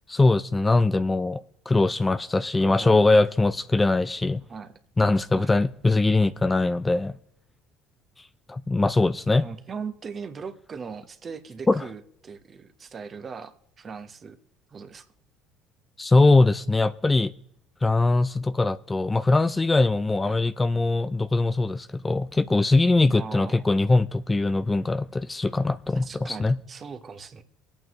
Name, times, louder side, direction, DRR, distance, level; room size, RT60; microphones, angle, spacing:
voice 1, 0.1-4.4 5.0-7.2 8.5-9.5 11.7-11.8 16.0-17.3 17.8-26.6, left 2 dB, 20° left, 0.5 m, -22 dB
voice 2, 2.6-3.0 4.5-4.7 5.3-5.7 9.3-14.4 14.7-15.1 20.2-20.4 23.1-23.7 25.9-27.4, right 5 dB, 40° right, 1.2 m, -39 dB
24.0 x 8.8 x 3.1 m
hypercardioid pair, 75°, 0 cm